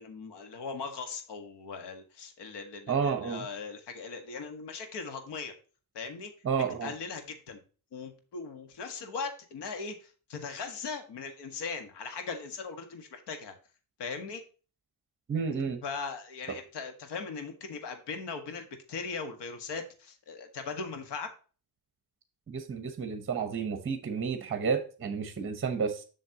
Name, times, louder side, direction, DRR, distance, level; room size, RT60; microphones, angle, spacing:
voice 1, 0.0-5.5 5.9-6.3 6.8-7.6 7.9-13.5 14.0-14.4 15.8-21.3, left 5 dB, 85° left, 7 dB, 1.7 m, -39 dB
voice 2, 2.9-3.4 6.4-6.9 15.3-15.8 22.5-26.0, right 6 dB, 30° right, 8 dB, 1.0 m, -31 dB
7.8 x 6.3 x 2.9 m, 0.37 s
cardioid pair, 115°, 40 cm